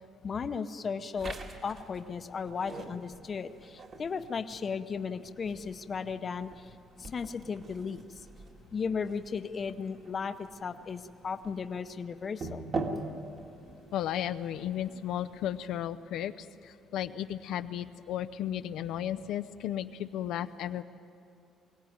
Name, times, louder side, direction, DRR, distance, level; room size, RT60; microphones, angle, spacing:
voice 1, 0.2-1.4 1.6-6.7 7.0-8.0 8.7-12.6, left 5 dB, 35° left, 10 dB, 0.8 m, -35 dB
sound 1, 1.2-15.9, right 3 dB, 40° right, 2.0 m, -44 dB
voice 2, 13.9-20.8, left 11 dB, 75° left, 10 dB, 0.6 m, -34 dB
22.5 x 17.5 x 9.5 m, 2.5 s
cardioid pair, 140°, 0 cm